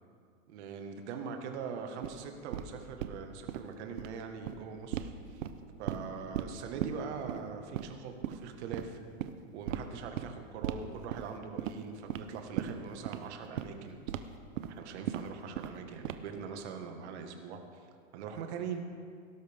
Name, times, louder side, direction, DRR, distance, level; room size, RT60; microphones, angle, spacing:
voice 1, 0.5-5.4 5.8-9.0 9.5-14.0 14.5-17.6 18.1-18.8, right 6 dB, 60° right, 4 dB, 1.8 m, -42 dB
sound 1, 2.0-2.1 2.5-2.7 3.0-3.2 3.5-3.6 3.9-4.1 4.5-4.6 4.9-5.1 5.4-6.0 6.3-6.5 6.8-6.9 7.3-7.4 7.7-7.9 8.2-8.4 8.7-8.8 9.2-9.3 9.7-9.8 10.2-10.3 10.6-10.8 11.1-11.3 11.6-11.8 12.1-12.2 12.6-12.7 13.0-13.2 13.6-13.7 14.1-14.2 14.6-14.7 15.1-15.2 15.6-15.8 16.0-16.4, right 11 dB, 80° right, 0.9 m, -35 dB
17.0 x 12.5 x 3.7 m, 2.2 s
supercardioid pair, 145°, 39 cm